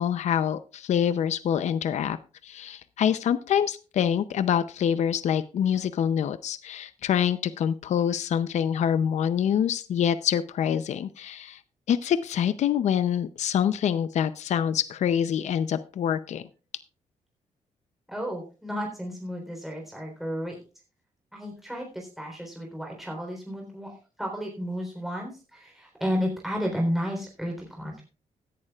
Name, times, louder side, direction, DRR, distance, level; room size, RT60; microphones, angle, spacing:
voice 1, 0.0-2.2 2.4-11.6 11.9-16.4, left 9 dB, 65° left, 13 dB, 0.6 m, -26 dB
voice 2, 18.1-20.6 21.3-28.0, equal, ahead, 0 dB, 3.7 m, -32 dB
16.5 x 11.0 x 2.4 m, 0.35 s
cardioid pair, 125°, 13 cm